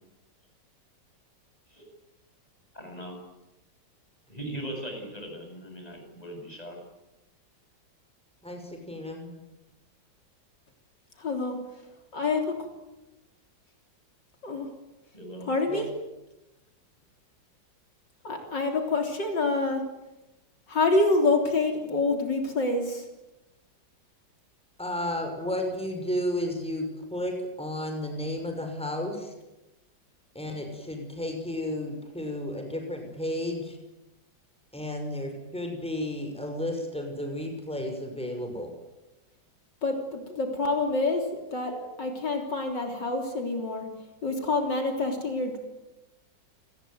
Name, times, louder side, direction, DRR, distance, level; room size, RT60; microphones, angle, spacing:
voice 1, 2.7-3.1 4.3-6.8 15.1-15.5, right 1 dB, 20° left, 2 dB, 8.3 m, -39 dB
voice 2, 8.4-9.3 15.7-15.8 24.8-29.3 30.3-33.8 34.7-38.7, left 1 dB, 5° left, 4 dB, 6.0 m, -33 dB
voice 3, 11.2-11.6 12.1-12.4 14.4-14.7 15.5-15.9 18.2-19.8 20.7-22.8 39.8-43.9 44.2-45.6, left 3 dB, 70° left, 3 dB, 4.1 m, -27 dB
29.5 x 20.5 x 9.5 m, 0.99 s
omnidirectional pair, 2.0 m